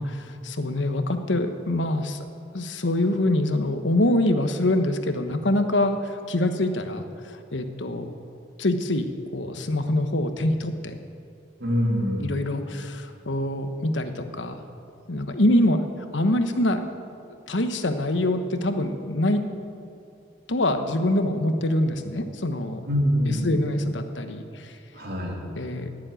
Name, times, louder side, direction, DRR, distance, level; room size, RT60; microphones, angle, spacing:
voice 1, 0.0-2.2 2.5-8.1 8.6-11.0 12.2-14.6 15.1-16.8 17.5-19.4 20.5-22.8 23.3-24.8 25.6-25.9, left 1 dB, 75° left, 8 dB, 1.2 m, -25 dB
voice 2, 11.6-12.4 22.9-23.6 24.9-25.4, equal, 55° right, -1 dB, 3.2 m, -25 dB
18.5 x 7.6 x 9.1 m, 2.5 s
head